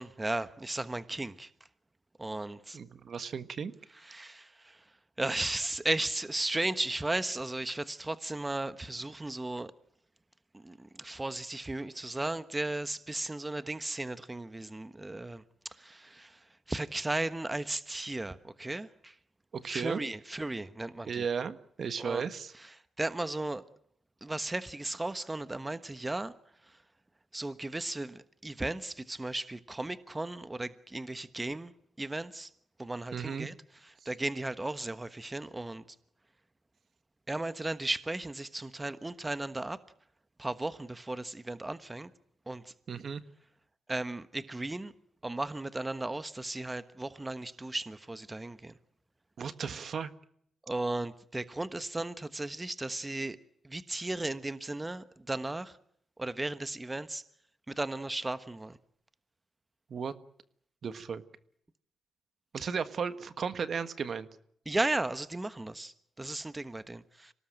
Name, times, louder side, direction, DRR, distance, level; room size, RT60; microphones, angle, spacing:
voice 1, 0.0-1.5 2.2-2.8 4.0-4.8 5.2-9.7 10.5-16.4 16.7-19.1 19.7-21.2 22.0-22.2 23.0-23.6 24.2-26.3 27.3-31.7 32.0-32.5 32.8-33.5 33.8-35.8 37.3-39.8 40.4-42.1 42.5-42.7 43.9-44.9 45.2-48.7 50.6-53.4 53.6-55.8 56.2-57.2 57.7-58.8 64.7-67.3, right 2 dB, 20° right, 1.3 m, -35 dB
voice 2, 2.7-3.7 19.5-20.0 21.1-22.5 33.1-33.5 42.9-43.2 49.4-50.1 59.9-60.1 60.8-61.2 62.5-64.3, right 6 dB, 60° right, 1.5 m, -35 dB
25.5 x 18.5 x 9.1 m
cardioid pair, 70°, 0 cm